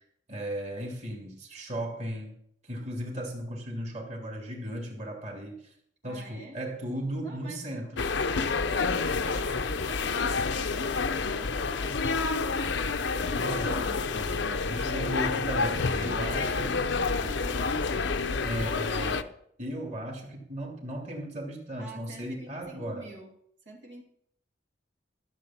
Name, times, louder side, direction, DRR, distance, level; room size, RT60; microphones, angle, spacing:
voice 1, 0.3-2.4 2.6-5.7 6.0-8.0 13.3-13.9 14.1-16.7 18.4-19.3 19.6-23.1, right 1 dB, 40° right, 0 dB, 2.7 m, -36 dB
voice 2, 6.0-6.6 7.2-12.9 13.5-14.9 15.6-17.7 21.8-23.3 23.7-24.0, right 1 dB, 75° right, -1 dB, 2.5 m, -47 dB
sound 1, 8.0-19.2, left 4 dB, 75° left, 0.7 m, -29 dB
14.0 x 7.4 x 5.8 m, 0.70 s
head